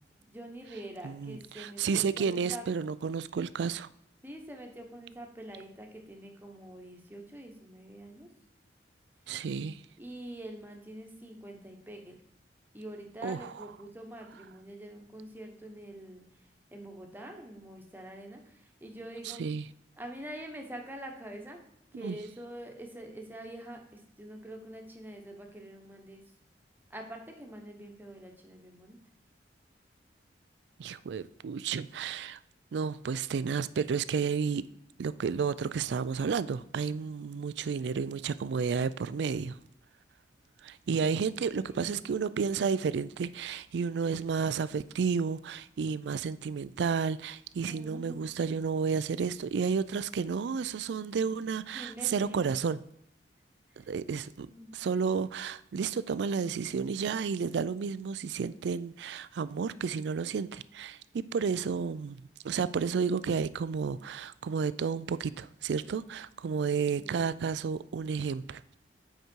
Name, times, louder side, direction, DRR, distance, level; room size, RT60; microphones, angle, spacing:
voice 1, 0.2-2.7 4.2-8.3 10.0-12.2 12.7-16.4 16.7-19.4 20.0-21.6 21.9-26.2 26.9-29.0 41.6-42.1 47.7-48.2 51.7-52.4 53.7-53.9 54.4-54.7 66.9-67.4, right 1 dB, 10° right, 1.1 m, -45 dB
voice 2, 1.0-3.9 9.3-9.8 13.2-13.5 19.3-19.6 21.9-22.2 30.8-32.4 32.7-34.7 35.0-39.6 40.6-52.8 53.8-68.8, right 6 dB, 70° right, 0.3 m, -32 dB
8.0 x 5.0 x 4.5 m
head